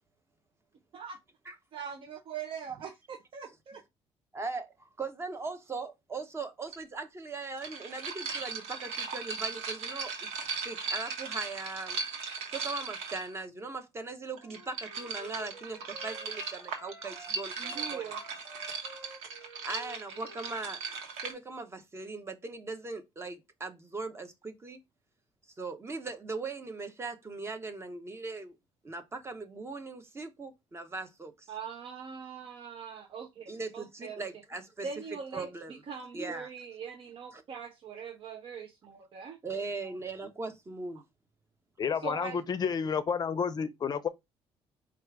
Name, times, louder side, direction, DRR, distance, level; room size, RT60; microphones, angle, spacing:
voice 1, 1.7-3.8 17.6-18.2 31.5-34.3 34.8-39.4 41.9-42.4, right 6 dB, 55° right, 0.7 m, -42 dB
voice 2, 4.3-10.3 10.6-12.0 12.5-18.0 19.6-20.8 21.2-24.8 25.6-28.5 28.8-31.5 33.5-34.9 35.3-35.8 36.1-36.5 37.3-37.4 39.4-41.0, right 3 dB, 25° right, 0.9 m, -39 dB
sound 1, 6.7-6.8 7.6-13.4 14.4-21.3, right 5 dB, 90° right, 1.1 m, -38 dB
Wind instrument woodwind instrument, 14.4-17.3 17.6-21.0, left 1 dB, 10° right, 2.2 m, -51 dB
voice 3, 41.8-44.1, left 6 dB, 40° left, 0.5 m, -30 dB
4.6 x 2.4 x 4.6 m
cardioid pair, 105°, 11 cm